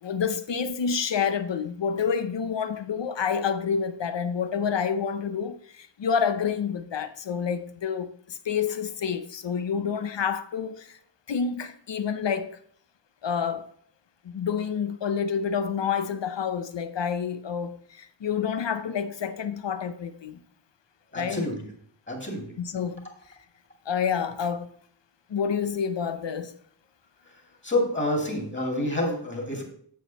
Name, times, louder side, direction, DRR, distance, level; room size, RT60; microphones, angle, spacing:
voice 1, 0.0-11.0 11.3-12.5 13.2-13.7 14.2-20.4 21.1-21.5 22.6-23.1 23.9-24.7 25.3-26.5, left 6 dB, 70° left, 0.8 m, -28 dB
voice 2, 21.1-21.6 22.1-22.5 27.6-29.6, left 1 dB, 25° left, 2.4 m, -28 dB
8.5 x 6.4 x 4.0 m
wide cardioid pair, 85°, 45 cm